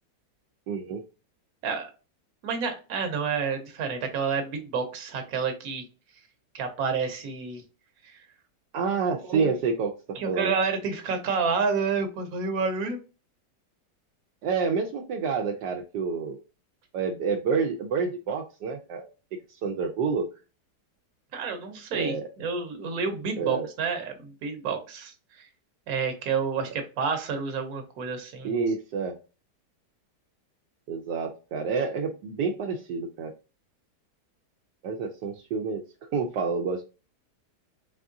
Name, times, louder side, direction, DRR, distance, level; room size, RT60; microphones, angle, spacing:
voice 1, 0.7-1.0 8.7-10.5 14.4-16.4 16.9-20.3 21.9-22.3 23.4-23.7 28.4-29.2 30.9-33.3 34.8-35.8 36.1-36.8, right 5 dB, 80° right, 1 dB, 1.2 m, -28 dB
voice 2, 2.4-5.8 6.5-7.6 8.0-8.2 9.2-9.5 10.2-13.0 21.3-25.5 25.9-28.5, right 5 dB, 60° right, 5 dB, 1.3 m, -29 dB
4.2 x 3.5 x 2.6 m, 0.32 s
omnidirectional pair, 1.8 m